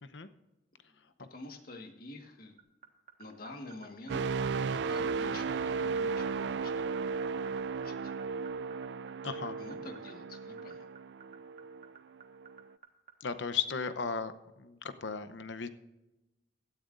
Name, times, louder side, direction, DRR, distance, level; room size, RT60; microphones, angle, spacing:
voice 1, 1.2-2.6 3.2-6.7 7.8-8.1 9.6-10.9, left 2 dB, 55° left, 4 dB, 1.6 m, -48 dB
sound 1, 2.6-13.1, right 8 dB, 45° right, 1.5 m, -52 dB
sound 2, 4.1-11.9 12.4-12.6, right 5 dB, 65° right, 0.3 m, -35 dB
voice 2, 9.2-9.6 13.2-14.3 14.6-15.7, left 6 dB, 80° left, 12 dB, 0.8 m, -35 dB
17.0 x 13.0 x 2.6 m, 1.0 s
head